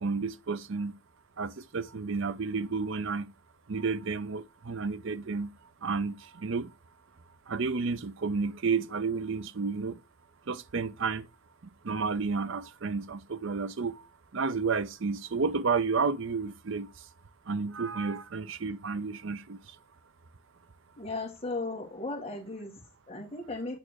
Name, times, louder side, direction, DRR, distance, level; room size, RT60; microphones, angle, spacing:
voice 1, 0.0-0.9 1.4-3.3 3.7-5.5 5.8-6.7 7.5-10.0 10.5-11.2 11.8-13.9 14.3-16.9 17.5-19.6, right 4 dB, 55° right, 0.6 m, -31 dB
voice 2, 21.0-23.8, left 2 dB, 25° left, 1.8 m, -36 dB
8.8 x 3.8 x 6.3 m
head